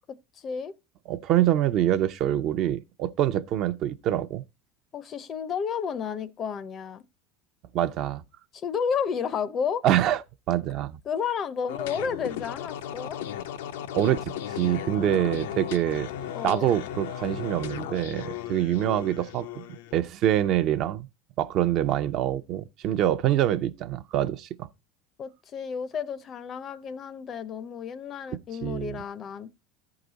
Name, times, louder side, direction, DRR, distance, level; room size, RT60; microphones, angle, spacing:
voice 1, 0.4-0.7 4.9-7.0 8.5-9.8 11.1-13.2 16.3-16.7 25.2-29.5, left 6 dB, 30° left, 0.5 m, -31 dB
voice 2, 1.1-4.4 7.7-8.2 9.8-10.2 10.5-11.0 13.9-16.1 16.4-19.6 19.9-21.1 21.4-24.7 28.6-29.0, right 12 dB, 45° right, 0.6 m, -25 dB
sound 1, 11.7-20.0, left 10 dB, 90° left, 0.6 m, -36 dB
13.5 x 4.8 x 3.9 m
supercardioid pair, 140°, 0 cm